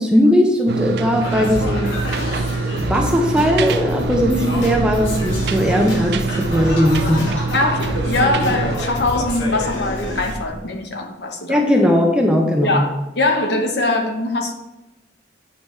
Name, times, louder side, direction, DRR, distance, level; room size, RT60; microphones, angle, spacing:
voice 1, 0.0-2.2 2.8-7.2 11.5-12.8, equal, 5° right, 1 dB, 0.6 m, -18 dB
sound 1, 0.7-8.8, right 3 dB, 55° right, 0.4 m, -25 dB
Singing, 1.2-10.3, left 1 dB, 80° left, 1.5 m, -28 dB
sound 2, 3.8-10.6, right 1 dB, 75° right, 1.8 m, -33 dB
voice 2, 7.5-11.6 12.6-14.5, left 2 dB, 55° left, 4 dB, 0.9 m, -22 dB
9.1 x 4.8 x 3.2 m, 0.99 s
head